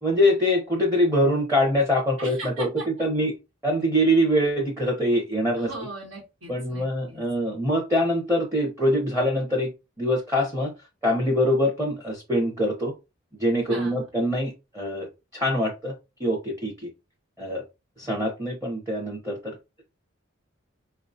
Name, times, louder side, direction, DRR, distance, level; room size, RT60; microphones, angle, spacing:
voice 1, 0.0-2.7 3.0-3.4 3.6-5.7 6.5-9.7 10.0-10.7 11.0-12.9 13.4-16.9 17.4-17.6 18.0-19.6, equal, 15° right, -1 dB, 0.6 m, -24 dB
voice 2, 2.2-3.1 5.6-7.2 13.7-14.0, right 2 dB, 80° right, -2 dB, 1.3 m, -39 dB
4.7 x 2.2 x 2.6 m, 0.26 s
head